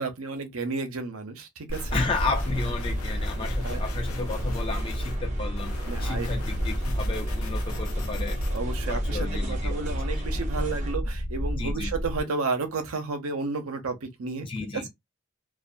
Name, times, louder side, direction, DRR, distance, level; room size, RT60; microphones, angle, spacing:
voice 1, 0.0-2.0 3.6-3.8 5.9-6.3 8.5-14.5 14.7-14.9, right 3 dB, 80° right, 0.7 m, -32 dB
sound 1, 1.7-5.2 5.5-8.6, left 3 dB, 85° left, 0.6 m, -43 dB
sound 2, 1.7-12.2, equal, 55° left, 0.8 m, -30 dB
voice 2, 1.9-8.4 8.9-9.8 11.6-11.9 14.4-14.9, left 3 dB, 25° left, 0.4 m, -33 dB
sound 3, 2.1-10.9, right 1 dB, 35° right, 0.7 m, -38 dB
2.5 x 2.3 x 2.2 m
head